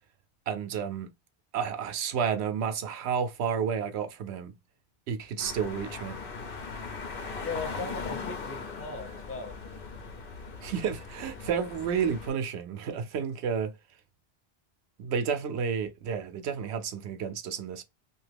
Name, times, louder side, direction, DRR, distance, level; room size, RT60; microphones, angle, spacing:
voice 1, 0.5-1.1 1.5-4.6 5.1-6.2 10.6-13.7 15.0-17.8, right 7 dB, 85° right, 0.9 m, -31 dB
sound 1, 5.4-12.3, left 4 dB, 60° left, 0.9 m, -39 dB
voice 2, 7.4-9.5, left 4 dB, 15° left, 0.5 m, -38 dB
2.8 x 2.4 x 3.3 m
omnidirectional pair, 1.1 m